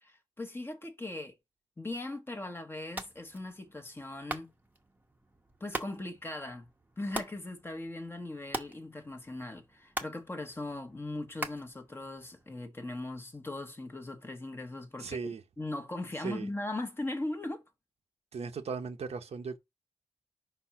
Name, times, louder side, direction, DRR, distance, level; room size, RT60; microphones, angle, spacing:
voice 1, 0.0-1.3 1.8-4.5 5.6-6.7 7.0-15.3 15.6-17.6, left 2 dB, 20° left, 1.0 m, -39 dB
sound 1, 2.8-12.6, right 2 dB, 15° right, 0.9 m, -44 dB
voice 2, 15.0-15.4 16.2-16.5 18.3-19.6, right 5 dB, 65° right, 0.8 m, -37 dB
5.3 x 4.3 x 5.7 m
wide cardioid pair, 125°, 12 cm